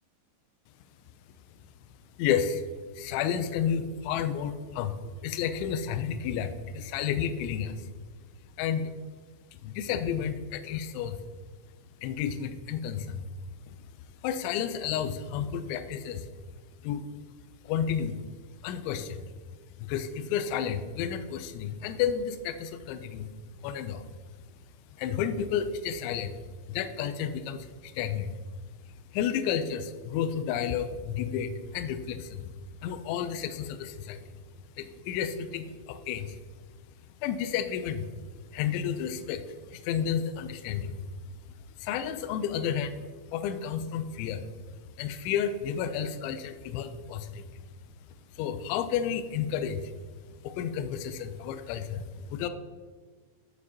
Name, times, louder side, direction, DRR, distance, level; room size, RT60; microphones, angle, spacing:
voice 1, 2.2-2.6 2.9-7.9 8.6-8.9 9.6-11.2 12.0-13.3 13.7-13.8 14.2-16.3 16.8-17.1 17.6-18.2 18.6-19.3 19.8-23.3 23.6-24.1 25.0-26.4 26.7-28.4 29.1-32.5 32.8-34.3 34.8-36.4 37.2-38.1 38.5-41.0 41.8-43.0 43.3-44.5 45.0-47.4 48.4-49.9 50.4-52.5, left 8 dB, 85° left, 11 dB, 2.7 m, -31 dB
11.5 x 6.5 x 2.8 m, 1.5 s
omnidirectional pair, 5.7 m